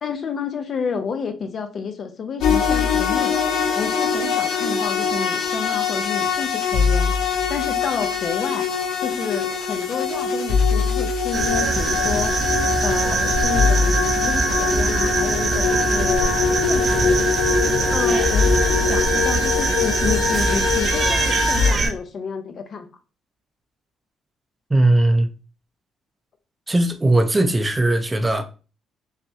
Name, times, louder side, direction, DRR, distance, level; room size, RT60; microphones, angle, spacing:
voice 1, 0.0-3.3 3.8-8.7 9.0-12.3 12.8-16.3 16.6-17.3 17.9-22.9, left 5 dB, 50° left, 0.7 m, -30 dB
sound 1, 2.4-21.7, left 6 dB, 85° left, 0.8 m, -22 dB
sound 2, 11.3-21.9, right 3 dB, 45° right, 0.9 m, -22 dB
voice 2, 24.7-25.3 26.7-28.4, right 1 dB, 20° right, 0.7 m, -18 dB
5.7 x 2.2 x 2.7 m
cardioid pair, 90°, 0 cm